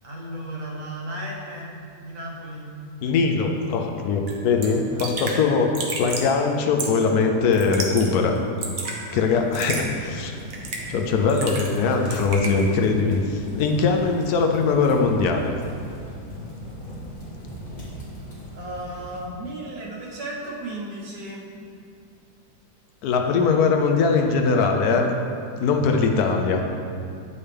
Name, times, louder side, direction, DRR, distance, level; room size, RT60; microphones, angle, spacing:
voice 1, 0.0-2.7 4.5-5.7 6.1-6.2 12.0-12.1 13.6-13.8 18.5-21.5, right 1 dB, 85° right, -4 dB, 1.8 m, -35 dB
voice 2, 3.0-5.7 6.0-8.4 9.1-10.3 10.9-15.5 23.0-25.1 25.6-26.6, left 4 dB, 70° left, 3 dB, 1.1 m, -21 dB
Raindrop / Drip, 4.3-4.4 4.6-4.7 5.0-5.4 5.7-6.3 6.8-7.1 7.5-8.1 8.4-9.0 9.5-9.8 10.5-10.9 11.3-11.8 12.1-12.5, right 3 dB, 45° right, 0.9 m, -31 dB
sound 1, 9.0-19.3, equal, 30° left, 1.4 m, -39 dB
8.8 x 5.4 x 3.4 m, 2.4 s
omnidirectional pair, 1.8 m